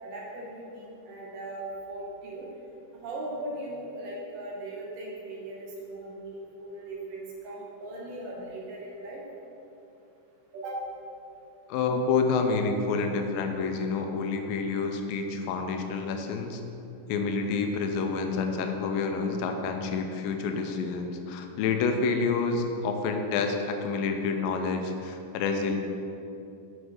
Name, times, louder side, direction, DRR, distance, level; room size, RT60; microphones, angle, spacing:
voice 1, 0.0-2.4 2.9-9.2 10.5-10.8, right 1 dB, 70° right, -3 dB, 2.5 m, -38 dB
voice 2, 11.7-16.6 17.1-25.8, left 4 dB, 80° left, 5 dB, 2.2 m, -28 dB
8.0 x 5.0 x 4.9 m, 2.8 s
omnidirectional pair, 4.3 m